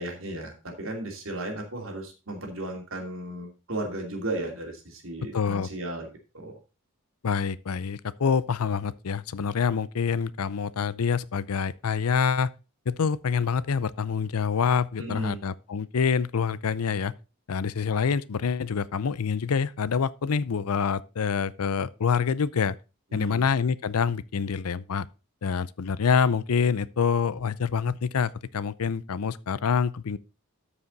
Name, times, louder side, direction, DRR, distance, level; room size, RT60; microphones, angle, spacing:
voice 1, 0.0-6.1 6.3-6.5 15.0-15.4 23.1-23.4, right 1 dB, 65° right, 2.6 m, -35 dB
voice 2, 5.3-5.7 7.2-12.5 12.9-17.1 17.5-22.8 23.1-25.1 25.4-30.2, left 6 dB, 85° left, 0.5 m, -26 dB
13.0 x 5.0 x 4.0 m
head